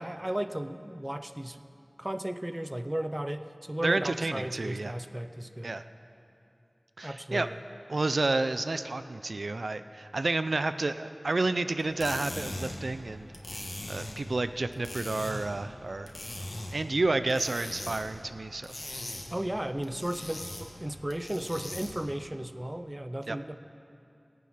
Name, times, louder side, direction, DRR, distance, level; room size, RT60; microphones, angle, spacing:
voice 1, 0.0-1.6 2.0-5.8 7.0-7.6 19.3-23.5, right 1 dB, 25° right, 11 dB, 0.6 m, -35 dB
voice 2, 3.8-4.9 5.6-5.8 7.0-7.5 7.9-13.3 13.9-16.1 16.7-18.8 23.3-23.4, right 2 dB, 85° right, 11 dB, 0.4 m, -30 dB
sound 1, 11.8-22.1, left 1 dB, 60° left, 1.7 m, -41 dB
17.5 x 9.4 x 5.8 m, 2.7 s
wide cardioid pair, 40°, 0 cm